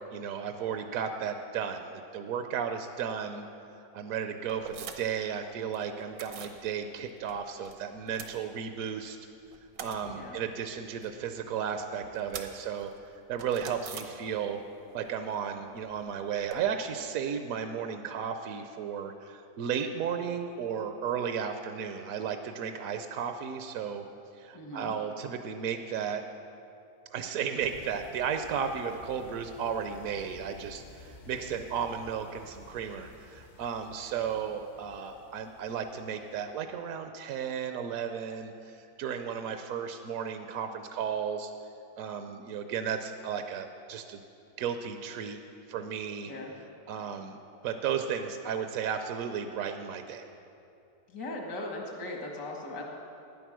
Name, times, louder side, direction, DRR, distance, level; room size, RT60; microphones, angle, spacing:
voice 1, 0.1-3.5 3.8-9.2 9.8-12.9 13.3-14.6 14.9-24.0 24.3-26.2 27.1-41.5 42.0-44.2 44.6-45.4 45.7-46.3 46.9-50.2, right 7 dB, 65° right, 7 dB, 0.9 m, -34 dB
sound 1, 4.5-5.3 5.5-6.6 7.0-7.7 8.0-9.0 9.3-14.7 15.0-16.6, right 6 dB, 85° right, 1.6 m, -45 dB
voice 2, 10.1-10.4 24.5-24.9 46.2-46.6 51.1-52.8, left 2 dB, 75° left, 0 dB, 2.3 m, -39 dB
sound 2, 27.6-36.7, left 2 dB, 45° left, 0.5 m, -53 dB
12.5 x 9.5 x 6.2 m, 2.7 s
omnidirectional pair, 1.8 m